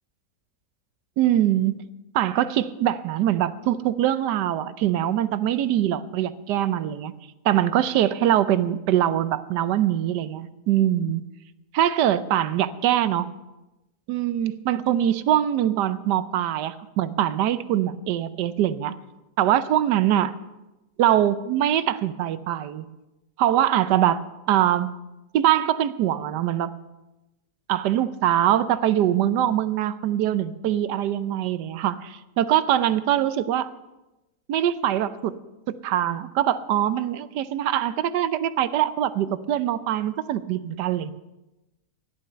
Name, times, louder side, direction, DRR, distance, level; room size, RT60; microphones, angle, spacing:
voice 1, 1.2-1.8 2.1-7.1 7.4-11.2 11.7-13.3 14.1-18.9 19.4-20.3 21.0-22.9 23.4-24.9 25.3-26.7 27.7-33.7 34.5-35.4 35.7-41.1, right 11 dB, 90° right, 14 dB, 1.3 m, -23 dB
14.5 x 11.0 x 5.6 m, 1.0 s
omnidirectional pair, 1.8 m